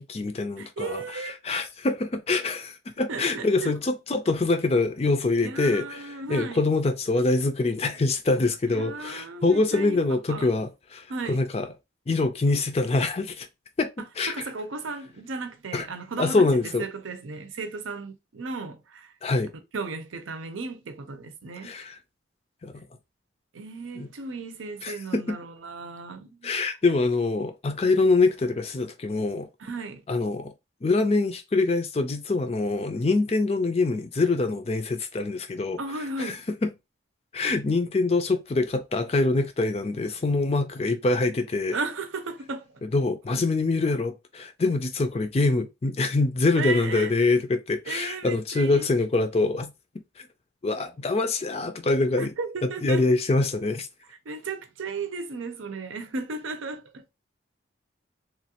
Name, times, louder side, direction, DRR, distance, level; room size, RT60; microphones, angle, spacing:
voice 1, 0.0-11.7 12.1-13.5 13.8-13.9 14.2-14.3 15.7-15.8 16.2-16.8 19.2-19.5 21.6-22.0 22.6-22.8 24.0-24.1 24.8-25.4 26.4-29.5 30.1-30.5 30.8-35.8 36.2-36.3 36.6-36.7 37.3-41.7 42.9-49.7 50.2-50.3 50.6-52.3 52.8-53.9, left 3 dB, 30° left, 0.4 m, -25 dB
voice 2, 0.6-1.3 3.1-3.8 5.4-6.6 8.7-10.6 11.1-11.4 14.0-19.1 19.7-21.7 23.5-26.5 29.6-30.0 35.8-36.4 41.7-42.8 46.5-47.1 47.9-48.9 52.2-53.0 54.1-57.1, right 3 dB, 90° right, 0.6 m, -35 dB
3.1 x 2.4 x 2.8 m
head